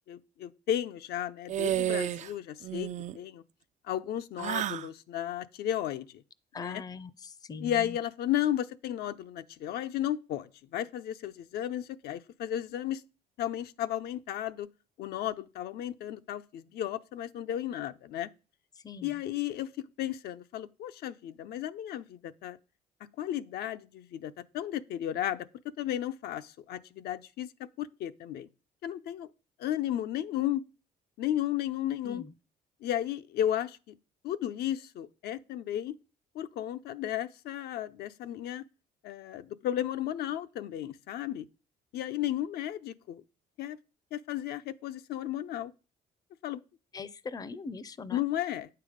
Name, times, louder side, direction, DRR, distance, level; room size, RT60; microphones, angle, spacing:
voice 1, 0.1-2.9 3.1-3.4 3.9-6.2 6.6-6.8 7.6-13.0 13.4-14.7 15.0-18.3 19.0-22.6 23.2-25.5 25.8-27.5 27.8-28.5 28.8-29.3 29.6-30.6 31.2-32.2 32.8-33.8 34.2-35.9 36.3-38.6 39.0-41.5 41.9-43.2 43.6-43.8 44.1-45.7 46.4-46.6 48.1-48.7, left 11 dB, 70° left, 0.6 m, -34 dB
sound 1, 1.5-2.3 2.6-3.2 4.4-4.9, right 11 dB, 45° right, 0.4 m, -31 dB
voice 2, 6.5-7.1 7.5-7.7 18.8-19.1 32.0-32.3 46.9-48.2, left 4 dB, 20° left, 0.5 m, -40 dB
9.0 x 6.7 x 5.0 m
cardioid pair, 110°, 17 cm